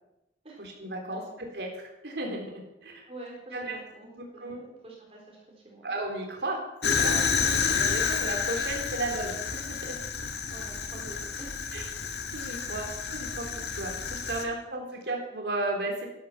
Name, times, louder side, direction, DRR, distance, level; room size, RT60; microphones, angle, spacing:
voice 1, 0.6-3.1 3.5-3.8 4.2-4.7 5.8-7.2 7.8-10.0 11.7-11.9 12.3-16.2, right 2 dB, 70° right, 1 dB, 3.4 m, -34 dB
voice 2, 3.1-5.9 7.4-7.7 10.5-11.6 14.9-15.0, right 2 dB, 35° right, -2 dB, 3.8 m, -47 dB
Fire, 6.8-14.5, left 6 dB, 70° left, 1.7 m, -30 dB
12.5 x 12.0 x 7.2 m, 0.91 s
head